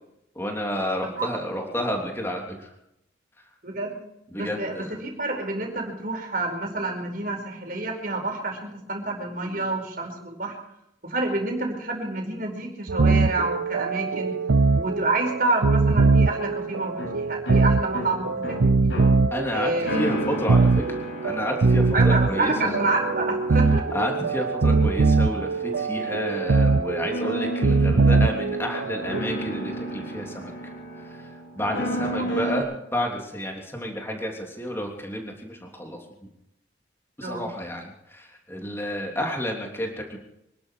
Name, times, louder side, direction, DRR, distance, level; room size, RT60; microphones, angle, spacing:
voice 1, 0.3-2.7 4.3-5.0 19.3-22.8 23.5-30.5 31.0-31.2 31.5-36.0 37.2-40.2, equal, 10° left, 1 dB, 3.2 m, -31 dB
voice 2, 1.0-1.5 3.6-4.0 4.4-10.6 11.0-14.4 14.8-18.6 19.5-20.1 21.9-23.8 32.0-32.3 37.2-37.5, right 2 dB, 45° right, 2 dB, 5.0 m, -28 dB
sound 1, 12.9-29.2, right 3 dB, 85° right, 0.6 m, -22 dB
sound 2, 16.2-32.6, equal, 85° left, 7.5 m, -33 dB
26.0 x 12.0 x 4.7 m, 0.82 s
head